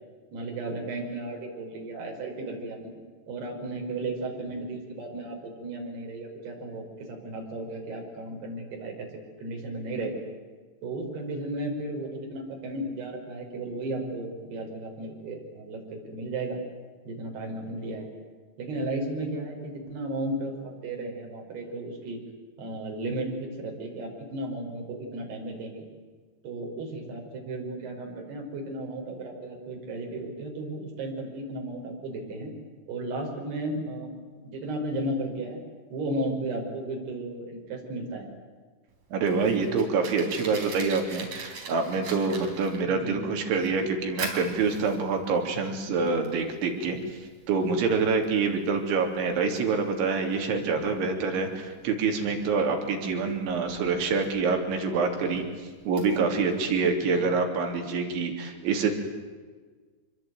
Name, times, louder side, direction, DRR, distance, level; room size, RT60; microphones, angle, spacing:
voice 1, 0.3-2.9 3.3-9.1 9.4-10.1 10.8-16.6 17.1-18.1 18.6-22.2 22.6-25.8 26.4-32.5 32.9-34.1 34.4-35.6 35.9-38.3 42.9-43.2 57.0-57.3, right 2 dB, 55° right, 1 dB, 7.0 m, -34 dB
Fire, 38.9-56.6, right 3 dB, 35° right, 4.5 m, -43 dB
voice 2, 39.1-47.0 47.5-58.9, right 4 dB, 75° right, 3 dB, 5.4 m, -26 dB
26.5 x 22.0 x 9.4 m, 1.4 s
omnidirectional pair, 5.5 m